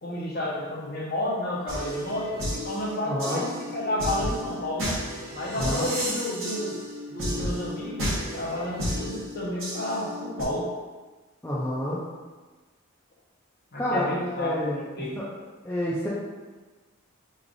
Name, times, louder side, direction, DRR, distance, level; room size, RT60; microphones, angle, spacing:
voice 1, 0.0-5.0 5.3-6.8 7.1-10.7 13.7-15.2, left 1 dB, 45° left, -4 dB, 0.7 m, -31 dB
sound 1, 1.7-10.4, equal, 60° right, 1.0 m, -33 dB
voice 2, 3.1-3.4 5.5-5.9 11.4-12.0 13.8-14.1 14.4-14.8 15.2-15.3 15.6-16.1, equal, 10° left, -8 dB, 0.4 m, -28 dB
3.2 x 2.4 x 3.7 m, 1.3 s
head